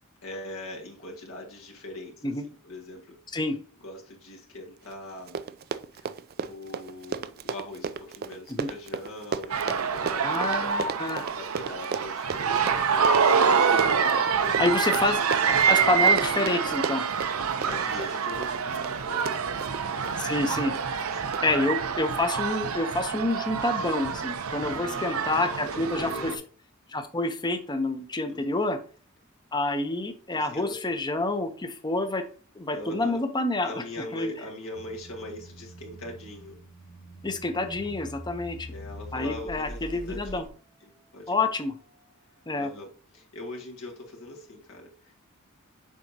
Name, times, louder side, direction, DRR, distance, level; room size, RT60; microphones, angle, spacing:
voice 1, 0.2-3.2 3.8-5.4 6.0-11.0 11.3-15.0 17.6-20.2 21.1-21.4 24.6-26.4 28.3-28.7 30.3-31.0 32.7-33.2 33.6-36.6 38.7-40.4 40.8-41.3 42.5-45.1, left 1 dB, 70° left, -1 dB, 1.8 m, -42 dB
Run, 4.9-5.0 5.2-20.2 20.8-21.0 21.3-21.4, right 6 dB, 45° right, 0.4 m, -35 dB
sound 1, 9.5-26.3, right 6 dB, 85° right, 0.7 m, -26 dB
voice 2, 10.2-11.2 14.6-15.2 15.5-17.0 20.2-20.7 21.4-26.3 26.9-28.8 29.5-32.2 32.5-34.3 37.2-38.7 39.1-40.5 41.3-41.7 42.5-42.7, left 2 dB, 20° left, 8 dB, 0.7 m, -28 dB
sound 2, 34.7-40.5, equal, 40° left, 1.5 m, -43 dB
7.4 x 4.9 x 2.8 m, 0.41 s
head